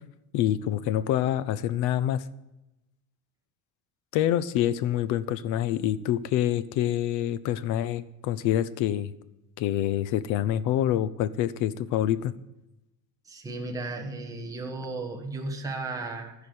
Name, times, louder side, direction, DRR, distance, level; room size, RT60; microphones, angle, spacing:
voice 1, 0.3-2.2 4.1-9.1 9.6-12.3, left 11 dB, 50° left, 17 dB, 0.6 m, -26 dB
voice 2, 13.2-16.3, right 2 dB, 10° right, 1 dB, 1.2 m, -35 dB
14.0 x 5.1 x 9.2 m, 0.95 s
cardioid pair, 180°, 38 cm